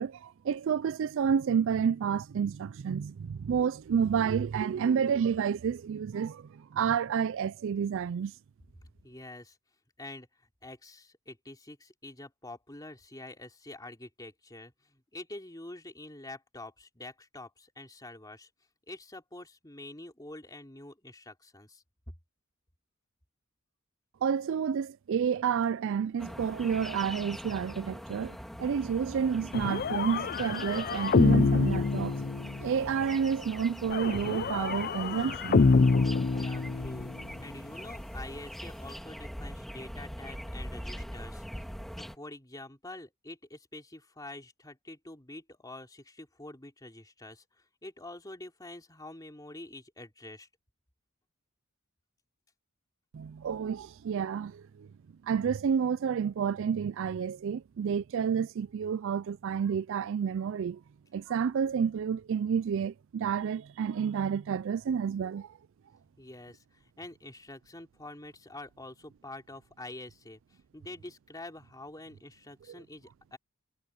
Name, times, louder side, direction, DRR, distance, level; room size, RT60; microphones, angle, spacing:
voice 1, 0.0-8.3 24.2-32.2 32.6-35.7 53.1-54.9 55.2-60.8 61.1-65.6, right 7 dB, 60° right, 0.3 m, -30 dB
voice 2, 9.0-9.6 10.0-18.5 18.9-22.1 36.4-37.1 37.4-41.7 42.0-50.5 66.2-73.4, left 2 dB, 15° left, 3.1 m, -46 dB
sound 1, 26.2-42.2, equal, ahead, 3.4 m, -42 dB
sound 2, 29.5-32.8 33.9-37.2, left 4 dB, 45° left, 0.5 m, -26 dB
head